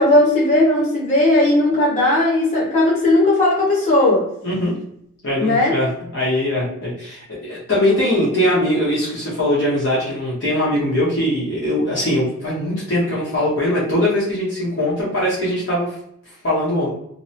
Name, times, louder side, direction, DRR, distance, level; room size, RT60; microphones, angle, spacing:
voice 1, 0.0-4.3 5.4-5.8, left 1 dB, 35° left, -8 dB, 1.2 m, -16 dB
voice 2, 4.4-4.7 5.2-5.9 6.1-15.9 16.4-16.9, left 1 dB, 60° left, -8 dB, 0.9 m, -21 dB
2.8 x 2.0 x 2.7 m, 0.76 s
head